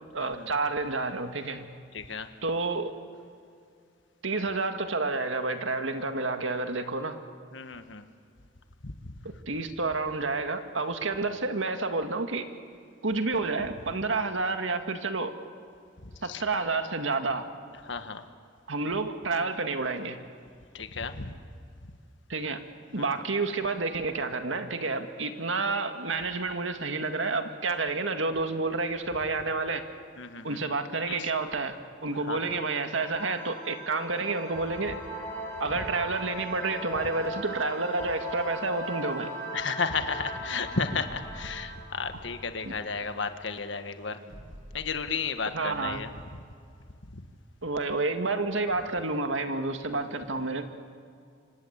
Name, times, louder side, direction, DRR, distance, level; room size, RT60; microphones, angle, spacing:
voice 1, 0.1-1.7 2.4-2.9 4.2-7.2 9.2-12.4 13.0-15.3 16.2-17.4 18.7-20.2 22.3-22.6 22.9-29.9 30.4-31.7 32.0-35.0 35.6-39.3 42.6-42.7 45.4-46.0 47.6-50.7, right 3 dB, 85° right, 7 dB, 2.0 m, -29 dB
voice 2, 1.9-2.3 7.5-8.0 8.8-9.1 16.0-16.4 17.8-18.2 20.7-21.3 22.9-23.1 30.2-30.6 31.1-31.3 32.2-32.6 39.5-44.2 44.7-46.1 47.1-47.2 49.9-50.0, left 5 dB, 75° left, 8 dB, 1.5 m, -33 dB
sound 1, 32.8-43.2, right 1 dB, 10° left, 6.9 m, -39 dB
sound 2, 40.3-45.3, equal, 30° right, 1.6 m, -50 dB
26.5 x 25.5 x 8.3 m, 2.3 s
head